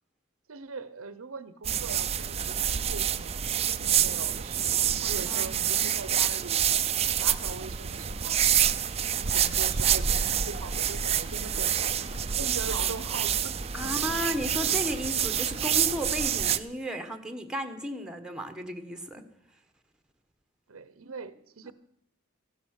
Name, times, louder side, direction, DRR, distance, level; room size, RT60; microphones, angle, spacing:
voice 1, 0.5-6.6 7.2-8.4 9.3-13.6 13.8-13.9 20.7-21.7, right 4 dB, 85° right, 14 dB, 0.8 m, -41 dB
sound 1, 1.6-16.6, right 9 dB, 30° right, 0.5 m, -27 dB
voice 2, 5.1-5.8 13.7-19.2 21.6-21.7, equal, 5° right, 7 dB, 1.2 m, -34 dB
sound 2, 7.8-16.0, equal, 90° left, 2.6 m, -42 dB
15.0 x 12.0 x 6.5 m, 0.76 s
head